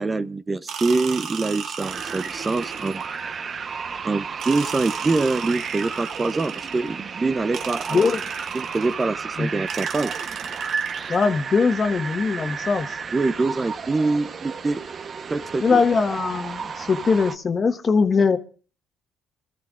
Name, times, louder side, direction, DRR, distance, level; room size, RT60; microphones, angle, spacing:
voice 1, 0.0-3.0 4.0-8.0 8.5-10.2 13.1-14.8 15.3-15.8, right 3 dB, 30° right, 0.7 m, -24 dB
sound 1, 0.7-3.2 4.4-7.0 7.5-9.1 9.7-11.3, right 7 dB, 65° right, 1.2 m, -35 dB
sound 2, 1.8-17.3, right 5 dB, 50° right, 1.0 m, -33 dB
voice 2, 7.9-8.2 9.4-9.5 11.1-13.0 15.6-18.4, left 5 dB, 40° left, 1.4 m, -21 dB
26.0 x 13.5 x 2.5 m
supercardioid pair, 60°, 0 cm